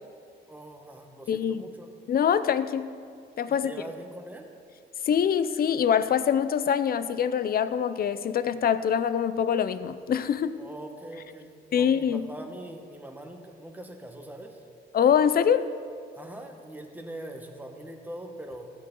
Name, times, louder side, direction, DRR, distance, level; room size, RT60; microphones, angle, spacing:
voice 1, 0.5-1.9 3.5-4.5 10.6-14.6 16.2-18.7, right 1 dB, 10° right, 4 dB, 1.3 m, -42 dB
voice 2, 1.3-1.6 2.1-2.9 3.4-3.7 5.1-10.6 11.7-12.2 14.9-15.7, left 8 dB, 50° left, 13 dB, 0.6 m, -24 dB
15.0 x 8.4 x 3.8 m, 2.2 s
cardioid pair, 90°, 20 cm